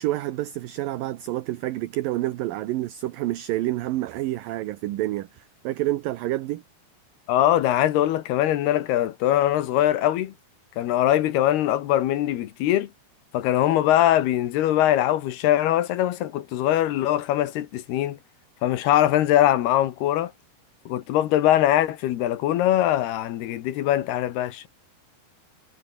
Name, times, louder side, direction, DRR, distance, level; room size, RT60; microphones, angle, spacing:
voice 1, 0.0-6.6, right 15 dB, 70° right, 2.3 m, -28 dB
voice 2, 7.3-10.3 10.8-12.9 13.3-18.2 18.6-20.3 20.9-24.7, left 12 dB, 70° left, 3.2 m, -22 dB
omnidirectional pair, 4.9 m